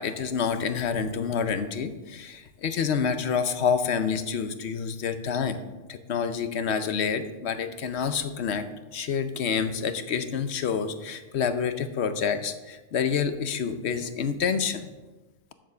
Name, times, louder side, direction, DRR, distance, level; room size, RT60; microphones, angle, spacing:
voice 1, 0.0-5.6 5.9-8.6 8.9-14.9, left 6 dB, 65° left, 10 dB, 1.0 m, -28 dB
7.6 x 7.1 x 6.6 m, 1.2 s
omnidirectional pair, 1.2 m